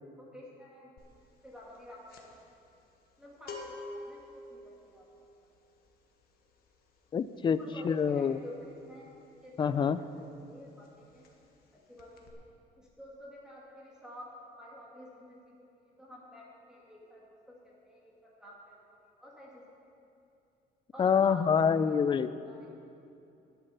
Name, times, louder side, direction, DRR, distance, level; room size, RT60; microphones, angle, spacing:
voice 1, 0.2-1.2 1.4-2.5 3.2-5.5 7.6-9.1 9.4-11.3 11.9-12.4 12.8-18.8 19.2-19.6 20.9-22.0 22.4-22.7, left 1 dB, 5° right, -5 dB, 2.2 m, -50 dB
sound 1, 1.0-1.2 1.5-10.1 10.4-10.6 10.8-11.7 12.0-12.3, left 2 dB, 65° left, 1.5 m, -49 dB
voice 2, 7.1-7.6 7.8-8.4 9.6-10.0 21.0-22.3, left 7 dB, 30° left, 14 dB, 0.4 m, -26 dB
11.0 x 8.2 x 6.7 m, 2.7 s
cardioid pair, 110°, 17 cm